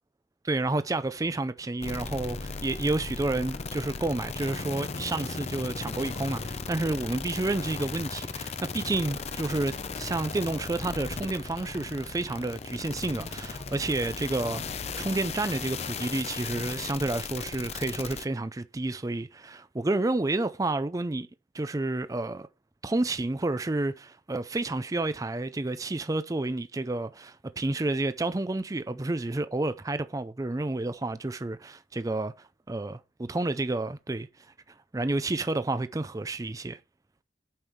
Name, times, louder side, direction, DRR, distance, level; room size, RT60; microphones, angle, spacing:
voice 1, 0.4-21.3 21.5-22.5 22.8-34.3 34.9-36.8, right 2 dB, 20° right, 0.4 m, -30 dB
sound 1, 1.8-18.2, left 4 dB, 35° left, 0.6 m, -36 dB
8.7 x 5.5 x 4.6 m
head